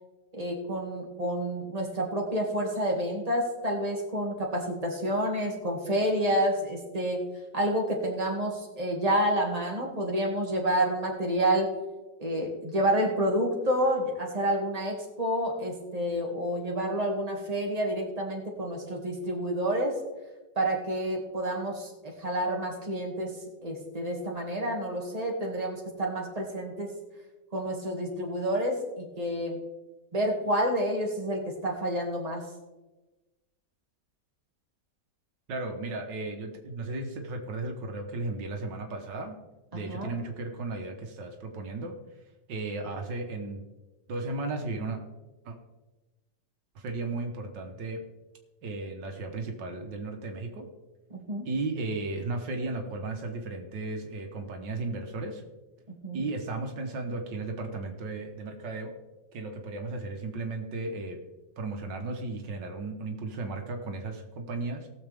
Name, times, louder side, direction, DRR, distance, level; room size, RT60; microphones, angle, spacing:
voice 1, 0.3-7.3 7.5-11.7 12.2-20.0 20.6-23.4 23.6-26.9 27.5-29.6 30.1-32.4 39.9-40.1 51.1-51.5 55.9-56.2, equal, 20° right, -1 dB, 2.2 m, -29 dB
voice 2, 35.5-39.4 39.7-41.9 42.5-43.6 44.1-45.0 45.5-45.6 46.8-48.0 48.6-50.7 51.5-55.4 56.1-59.0 59.3-61.2 61.6-64.9, right 3 dB, 80° right, 3 dB, 1.9 m, -35 dB
19.0 x 7.1 x 3.5 m, 1.1 s
omnidirectional pair, 1.9 m